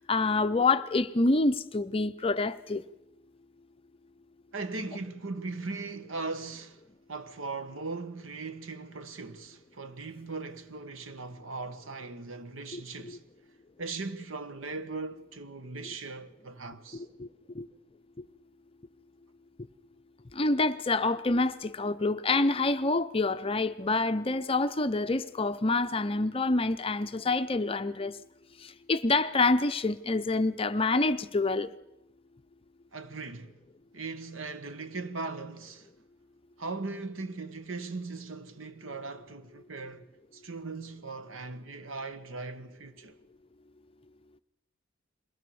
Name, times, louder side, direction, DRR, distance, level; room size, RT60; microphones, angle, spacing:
voice 1, 0.1-2.8 12.7-13.2 16.9-17.3 17.5-17.7 20.3-28.2 28.6-31.7, left 3 dB, 30° left, 0.6 m, -27 dB
voice 2, 4.5-6.8 7.1-13.2 13.8-17.0 32.9-33.6 33.9-35.9 36.6-40.1 40.3-43.1, right 3 dB, 85° right, 1.2 m, -39 dB
22.0 x 17.0 x 7.0 m
head